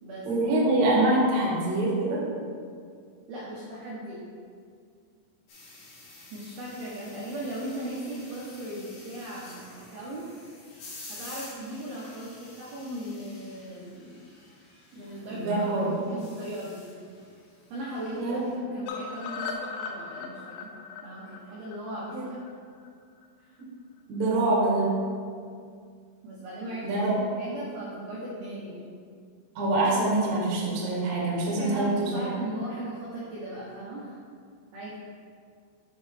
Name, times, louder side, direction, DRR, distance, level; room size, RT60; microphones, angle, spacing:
voice 1, 0.3-2.2 15.3-15.9 18.1-18.4 22.1-22.3 23.6-23.7 24.1-25.0 26.8-27.2 29.6-32.1, right 2 dB, 65° right, -5 dB, 1.8 m, -25 dB
voice 2, 3.3-4.2 6.3-9.6 9.9-10.3 11.1-14.2 14.9-16.8 17.7-22.4 23.4-23.5 26.2-28.9 31.3-34.2 34.7-35.0, right 1 dB, 80° right, -7 dB, 2.2 m, -38 dB
sound 1, 5.5-18.6, left 2 dB, 65° left, 2.1 m, -49 dB
sound 2, 18.9-22.9 23.2-23.3 23.6-23.7 24.0-24.1, left 5 dB, 85° left, 3.3 m, -38 dB
8.6 x 5.3 x 3.4 m, 2.2 s
omnidirectional pair, 5.9 m